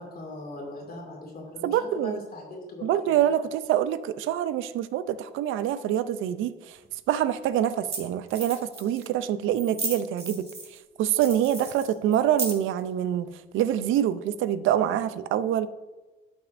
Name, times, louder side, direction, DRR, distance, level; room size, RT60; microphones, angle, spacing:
voice 1, 0.0-3.1, left 2 dB, 50° left, -1 dB, 2.3 m, -40 dB
voice 2, 1.6-2.2 2.8-6.8 7.1-13.3 13.5-15.7, right 11 dB, 85° right, 15 dB, 0.5 m, -26 dB
sound 1, 6.8-6.9 7.7-7.8 7.9-8.0 8.3-9.1 9.5-10.8 11.1-12.8, right 3 dB, 30° right, 2.5 m, -34 dB
12.0 x 6.1 x 2.5 m, 1.2 s
cardioid pair, 90°, 20 cm